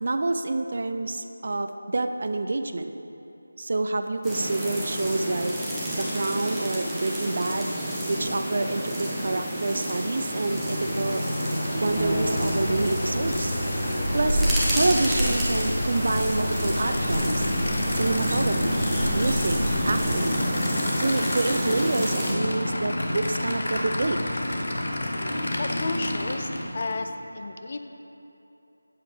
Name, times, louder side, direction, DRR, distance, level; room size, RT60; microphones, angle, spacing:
voice 1, 0.0-2.9 3.6-5.5 5.9-7.7 8.1-13.5 14.1-14.4 14.7-17.5 17.9-18.9 19.1-20.4 21.0-24.2, right 2 dB, 45° right, 8 dB, 0.4 m, -28 dB
sound 1, 4.2-22.3, right 1 dB, 5° right, 0.9 m, -30 dB
Aircraft / Idling, 10.1-27.0, left 1 dB, 50° left, 0.9 m, -30 dB
sound 2, 11.9-20.2, equal, 85° left, 1.2 m, -30 dB
voice 2, 25.6-27.8, left 3 dB, 35° left, 7 dB, 0.4 m, -32 dB
7.7 x 7.3 x 5.0 m, 2.9 s
figure-of-eight pair, 165°, 0 cm